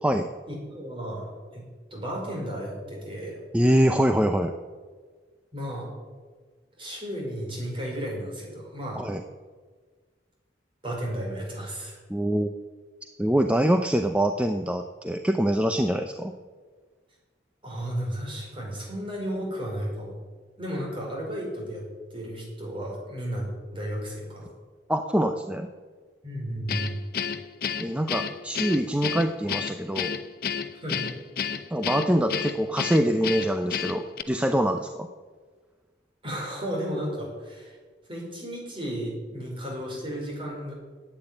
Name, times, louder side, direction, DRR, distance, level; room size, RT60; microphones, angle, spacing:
voice 1, 0.5-1.6 1.9-3.4 5.5-5.9 6.8-9.0 10.8-12.0 17.6-20.1 20.6-21.8 22.1-24.5 26.2-27.1 30.7-31.1 36.2-37.8 38.1-40.7, equal, 30° right, -2 dB, 5.2 m, -33 dB
voice 2, 3.5-4.5 9.0-9.2 12.1-12.5 13.2-16.3 24.9-25.7 27.8-30.1 31.7-35.1, right 1 dB, 5° right, 6 dB, 0.6 m, -24 dB
Guitar, 26.7-34.2, left 7 dB, 55° left, 0.8 m, -31 dB
12.0 x 9.1 x 9.9 m, 1.5 s
head